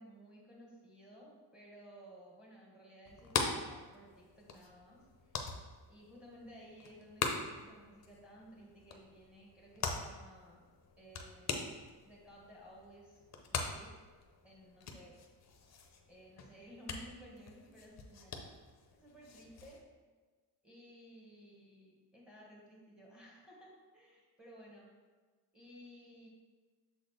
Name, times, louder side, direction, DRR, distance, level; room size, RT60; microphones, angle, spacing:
voice 1, 0.0-5.5 5.9-10.6 11.0-11.8 12.0-13.2 13.5-13.9 14.4-15.2 16.1-18.5 18.9-19.8 20.6-24.9 25.5-26.3, equal, ahead, -4 dB, 1.5 m, -56 dB
sound 1, 3.1-19.8, left 5 dB, 40° left, 0.7 m, -43 dB
7.1 x 4.0 x 3.3 m, 1.4 s
cardioid pair, 140°, 42 cm